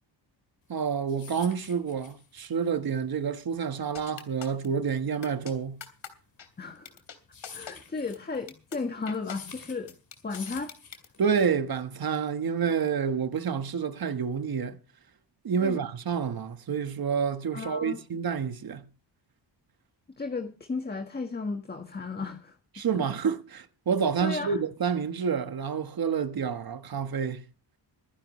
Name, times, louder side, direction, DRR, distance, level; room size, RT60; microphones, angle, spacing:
sound 1, 0.7-11.5, left 5 dB, 50° left, 4.4 m, -49 dB
voice 1, 0.7-5.8 11.2-14.8 15.4-18.8 22.7-27.4, right 6 dB, 50° right, 1.5 m, -28 dB
sound 2, 3.9-4.7 5.2-5.5 5.8-6.1 6.4-6.5 6.8-7.2 7.4-7.7 8.1-8.2 8.5-8.8 9.1-9.4 9.9-11.1, left 8 dB, 80° left, 3.3 m, -42 dB
voice 2, 6.6-7.0 7.5-9.9 10.2-10.7 15.6-15.8 17.5-18.0 20.2-22.5 22.9-23.0 24.2-24.6, left 4 dB, 20° left, 1.5 m, -34 dB
24.5 x 10.5 x 3.2 m
wide cardioid pair, 130°, 45 cm